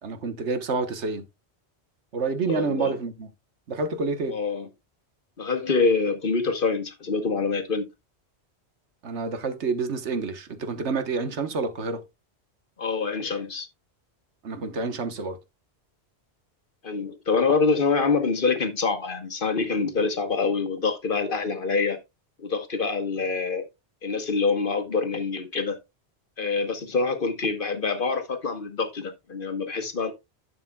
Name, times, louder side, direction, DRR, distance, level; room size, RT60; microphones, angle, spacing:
voice 1, 0.0-1.2 2.1-3.3 3.7-4.4 9.0-12.0 14.4-15.4, right 4 dB, 85° right, 1.4 m, -28 dB
voice 2, 2.5-3.0 4.3-4.7 5.4-7.9 12.8-13.7 16.8-22.0 22.4-23.7 24.0-25.8 26.4-30.1, left 4 dB, 55° left, 1.4 m, -25 dB
11.0 x 6.9 x 2.3 m
omnidirectional pair, 1.1 m